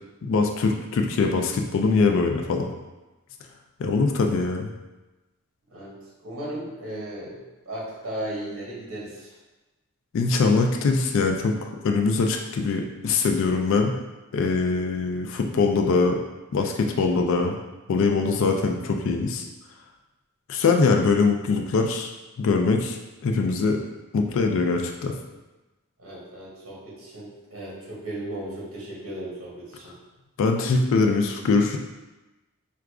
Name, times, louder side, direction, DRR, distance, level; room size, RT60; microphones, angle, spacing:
voice 1, 0.2-2.7 3.8-4.7 10.1-11.5 11.8-13.9 14.3-16.2 16.5-17.6 17.9-19.5 20.5-22.1 22.4-23.0 23.2-23.8 24.1-25.1 30.4-31.8, left 4 dB, 60° left, 3 dB, 0.3 m, -22 dB
voice 2, 6.2-7.4 7.6-9.4 26.0-29.9, right 1 dB, 60° right, -6 dB, 1.0 m, -36 dB
4.7 x 2.3 x 2.3 m, 1.1 s
head